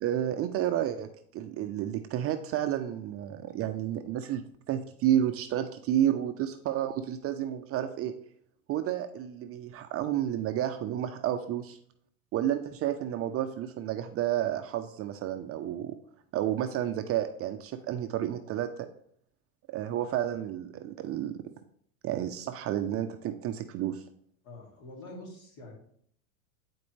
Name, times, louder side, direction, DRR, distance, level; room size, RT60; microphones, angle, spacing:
voice 1, 0.0-8.1 8.7-11.8 12.3-16.0 16.3-18.9 19.7-21.4 22.0-24.0, right 11 dB, 35° right, 7 dB, 0.5 m, -31 dB
voice 2, 24.4-25.7, left 1 dB, 55° left, 0 dB, 2.7 m, -46 dB
9.7 x 4.3 x 3.2 m, 0.63 s
hypercardioid pair, 105°, 42 cm